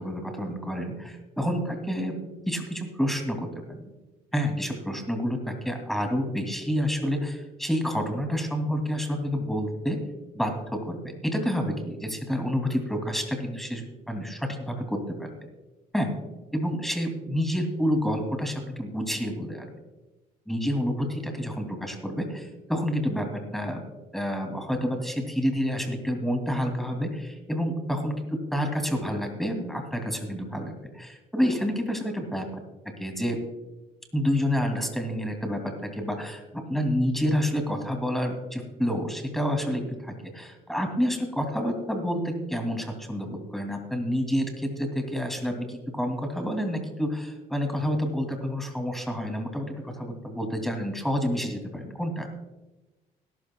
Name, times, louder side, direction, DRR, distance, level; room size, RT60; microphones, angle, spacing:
voice 1, 0.0-2.2 2.5-3.9 4.3-10.0 10.3-11.0 11.3-15.3 15.9-16.1 16.5-19.7 20.5-23.3 23.5-23.8 24.1-32.5 33.0-33.4 34.1-52.3, equal, ahead, 4 dB, 2.6 m, -29 dB
20.5 x 12.0 x 2.3 m, 1.1 s
cardioid pair, 95°, 16 cm